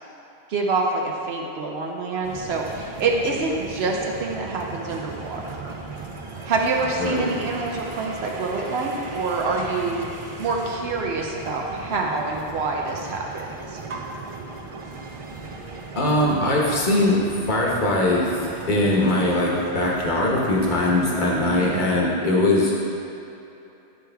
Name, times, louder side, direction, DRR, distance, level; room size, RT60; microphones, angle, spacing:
voice 1, 0.5-5.8 6.4-10.1 10.4-13.8 21.6-21.9, right 3 dB, 80° right, 0 dB, 0.9 m, -26 dB
sound 1, 2.2-21.8, right 3 dB, 40° right, 0.5 m, -37 dB
voice 2, 16.0-17.2 17.5-18.3 18.7-22.8, left 1 dB, 50° left, -4 dB, 1.3 m, -21 dB
9.7 x 4.7 x 3.4 m, 2.9 s
omnidirectional pair, 1.1 m